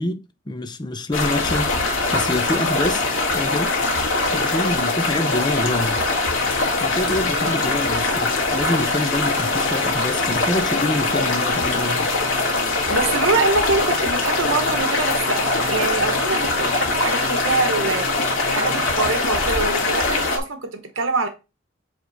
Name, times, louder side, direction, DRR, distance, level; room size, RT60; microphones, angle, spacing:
voice 1, 0.0-1.7 2.1-3.0 3.3-3.8 4.3-6.0 6.8-12.1, left 1 dB, 20° left, 0.6 m, -26 dB
sound 1, 1.1-20.4, left 3 dB, 75° left, 1.8 m, -22 dB
voice 2, 7.4-7.7 12.9-21.3, right 3 dB, 75° right, 1.0 m, -25 dB
8.0 x 3.6 x 3.9 m
head